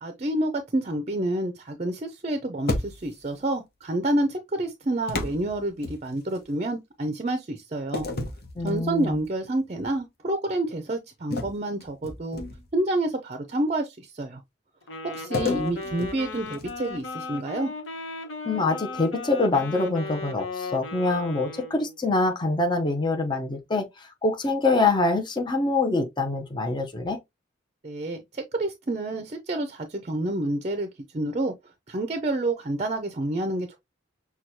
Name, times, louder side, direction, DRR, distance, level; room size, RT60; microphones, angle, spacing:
voice 1, 0.0-8.1 8.6-12.4 12.7-14.4 15.0-17.7 27.8-30.9 31.1-31.5 31.9-33.8, right 1 dB, 35° right, 0.5 m, -28 dB
sound 1, 2.7-3.3 5.1-6.4 7.9-9.3 9.7-10.0 11.3-12.8 15.3-17.0, left 2 dB, 55° left, 0.9 m, -33 dB
voice 2, 8.6-9.2 18.4-27.2, left 3 dB, 25° left, 0.7 m, -25 dB
Wind instrument woodwind instrument, 14.8-22.0, left 3 dB, 85° left, 1.0 m, -36 dB
6.1 x 2.3 x 2.7 m
head